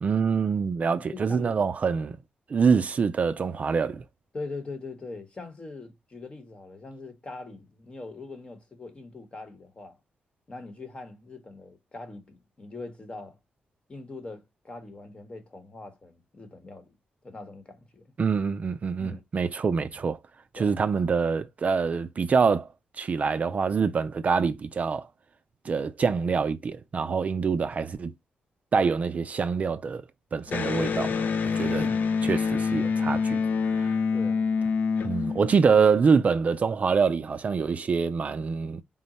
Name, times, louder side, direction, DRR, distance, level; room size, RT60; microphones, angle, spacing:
voice 1, 0.0-2.2 2.5-4.0 18.2-20.2 20.5-22.7 23.0-25.1 25.6-28.1 28.7-30.0 30.3-31.3 31.5-31.9 32.2-33.4 33.7-33.9 35.0-38.8, right 5 dB, 45° right, 0.4 m, -25 dB
voice 2, 1.0-1.5 4.3-10.0 10.5-13.4 13.9-16.9 17.2-18.1 19.0-19.2 20.6-20.8 31.7-32.1 34.1-34.5, left 3 dB, 30° left, 1.0 m, -42 dB
Electric guitar, 30.5-36.0, left 5 dB, 60° left, 0.5 m, -26 dB
3.8 x 2.1 x 4.0 m
cardioid pair, 95°, 3 cm